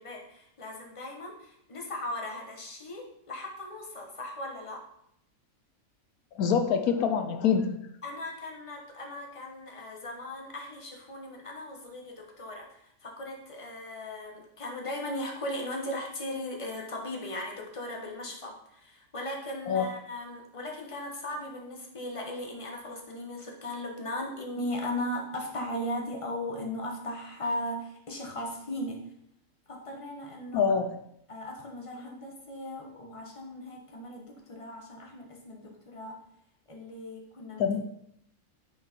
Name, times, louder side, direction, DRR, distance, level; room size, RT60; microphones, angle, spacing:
voice 1, 0.0-4.8 8.0-29.0 29.7-30.7 31.3-36.2 36.7-37.7, left 1 dB, 25° left, 1 dB, 1.3 m, -38 dB
voice 2, 6.4-7.8 19.7-19.9 30.5-31.0 37.6-37.8, left 6 dB, 80° left, 7 dB, 1.2 m, -25 dB
9.3 x 4.8 x 4.5 m, 0.74 s
omnidirectional pair, 1.5 m